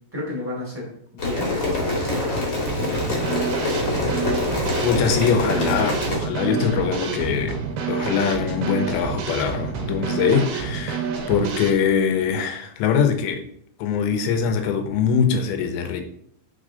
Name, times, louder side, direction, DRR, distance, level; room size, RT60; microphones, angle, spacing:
voice 1, 0.1-0.9 1.1-3.3, left 2 dB, 5° right, -5 dB, 1.6 m, -33 dB
sound 1, 1.2-6.2, left 2 dB, 50° left, 1.4 m, -25 dB
Drum kit / Snare drum, 2.7-11.7, right 6 dB, 75° right, 2.0 m, -28 dB
voice 2, 4.8-7.6 7.9-13.4 13.8-16.0, left 7 dB, 90° left, 6 dB, 3.1 m, -22 dB
8.5 x 4.2 x 3.8 m, 0.66 s
omnidirectional pair, 4.9 m